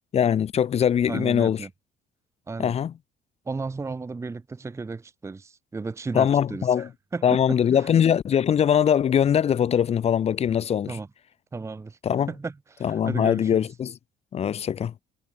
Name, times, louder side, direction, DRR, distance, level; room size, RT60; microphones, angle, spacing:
voice 1, 0.1-1.7 2.6-2.9 6.1-6.9 7.2-11.0 12.0-12.3 12.8-14.0 14.3-14.9, left 8 dB, 40° left, 0.6 m, -22 dB
voice 2, 1.1-1.7 2.5-2.8 3.5-7.4 7.7-7.9 10.9-11.1 11.5-12.0 12.3-13.6, right 4 dB, 15° right, 0.8 m, -34 dB
cardioid pair, 110°, 17 cm